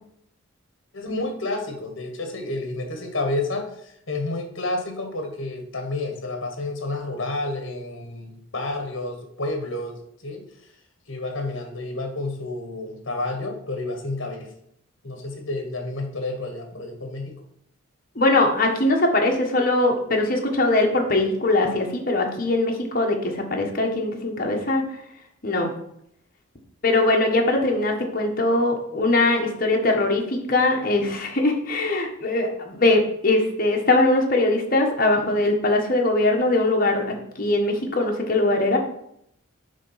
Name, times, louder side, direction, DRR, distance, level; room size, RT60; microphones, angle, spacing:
voice 1, 0.9-10.5 11.1-14.5 15.0-17.4, left 2 dB, 65° left, 4 dB, 1.3 m, -30 dB
voice 2, 18.1-24.8 25.4-25.7 26.8-38.8, left 2 dB, 45° left, 2 dB, 1.3 m, -21 dB
9.4 x 3.7 x 5.6 m, 0.74 s
head